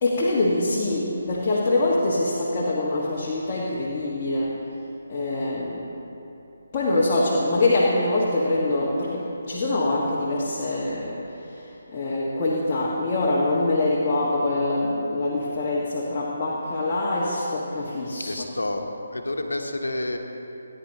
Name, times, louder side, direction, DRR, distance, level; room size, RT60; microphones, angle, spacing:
voice 1, 0.0-4.6 5.1-5.9 6.7-18.4, left 2 dB, 30° left, -7 dB, 1.6 m, -24 dB
voice 2, 18.2-20.2, left 1 dB, 80° left, 4 dB, 1.2 m, -29 dB
18.5 x 10.0 x 2.9 m, 2.9 s
figure-of-eight pair, 150°, 0 cm